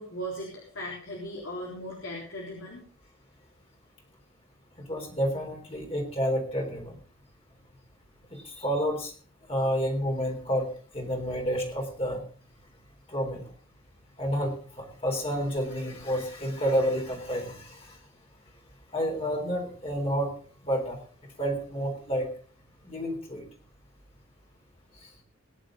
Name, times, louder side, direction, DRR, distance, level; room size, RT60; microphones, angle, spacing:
voice 1, 0.0-2.8, equal, 70° left, -2 dB, 3.9 m, -38 dB
voice 2, 4.9-7.0 8.3-9.1 9.5-12.2 13.1-13.5 14.2-18.0 18.9-20.3 20.6-21.0 21.4-22.3 22.8-23.4 25.0-25.1, equal, 30° left, 0 dB, 3.6 m, -30 dB
20.5 x 10.5 x 3.8 m, 0.42 s
head